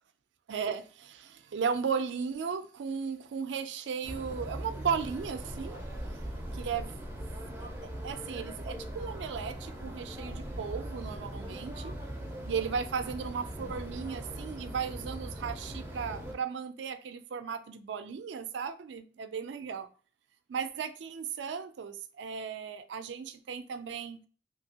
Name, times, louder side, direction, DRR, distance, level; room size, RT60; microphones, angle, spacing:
voice 1, 0.5-5.8 6.5-7.0 7.6-11.9 12.5-19.9 20.5-24.2, right 6 dB, 80° right, 0.3 m, -36 dB
sound 1, 4.0-16.3, right 1 dB, 10° right, 0.4 m, -40 dB
2.8 x 2.7 x 2.7 m
head